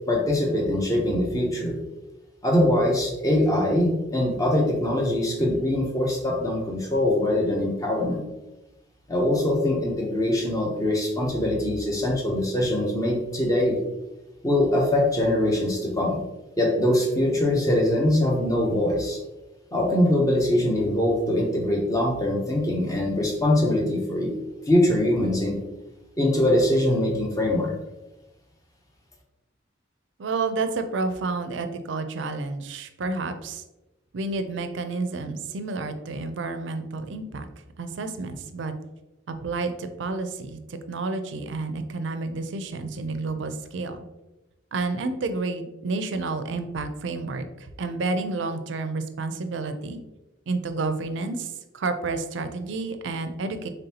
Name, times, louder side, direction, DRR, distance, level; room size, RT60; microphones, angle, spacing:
voice 1, 0.1-1.8 2.4-8.2 9.1-13.8 14.4-16.2 16.6-19.2 19.7-24.3 24.7-25.6 26.2-27.7, left 1 dB, 20° left, -1 dB, 0.7 m, -23 dB
voice 2, 30.2-33.6 34.1-37.5 37.8-38.7 39.3-44.1 44.7-50.0 50.5-53.7, right 3 dB, 70° right, 9 dB, 0.4 m, -30 dB
3.9 x 3.4 x 2.8 m, 1.0 s
head